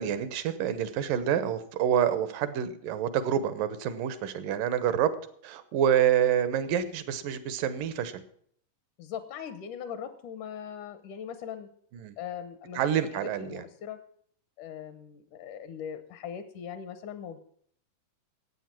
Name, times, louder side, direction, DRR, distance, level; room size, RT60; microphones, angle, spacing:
voice 1, 0.0-5.1 5.4-8.2 11.9-12.2 12.8-13.6, right 9 dB, 85° right, 13 dB, 2.7 m, -27 dB
voice 2, 9.0-11.7 12.2-12.9 13.2-14.0 14.6-17.4, left 8 dB, 75° left, 11 dB, 2.4 m, -40 dB
13.0 x 8.9 x 7.5 m, 0.62 s
omnidirectional pair, 3.7 m